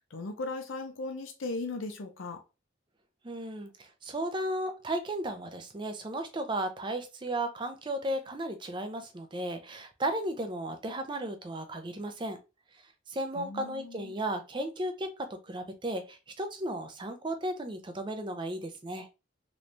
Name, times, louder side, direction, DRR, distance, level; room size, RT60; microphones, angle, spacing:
voice 1, 0.1-2.4 13.4-14.2, left 3 dB, 90° left, 0.6 m, -37 dB
voice 2, 3.2-12.4 13.1-19.1, right 1 dB, 25° right, 0.4 m, -35 dB
3.2 x 3.1 x 2.6 m
head